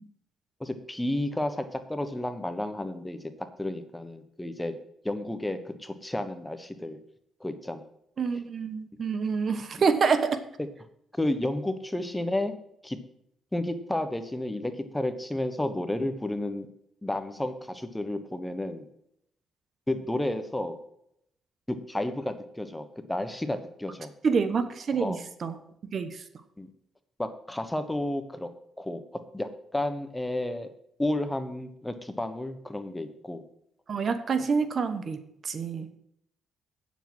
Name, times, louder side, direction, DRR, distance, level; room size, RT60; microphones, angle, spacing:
voice 1, 0.6-4.8 5.0-7.0 7.4-7.8 11.2-12.6 12.8-13.0 13.5-16.7 17.0-18.9 19.9-20.8 21.7-24.1 25.0-25.2 26.6-26.7 27.2-28.5 28.8-29.0 29.3-30.7 31.0-33.4, left 1 dB, 10° left, 9 dB, 1.3 m, -31 dB
voice 2, 8.2-10.4 24.2-25.6 25.9-26.2 33.9-36.0, right 5 dB, 50° right, 10 dB, 1.1 m, -27 dB
9.0 x 7.4 x 6.2 m, 0.74 s
cardioid pair, 90°, 0 cm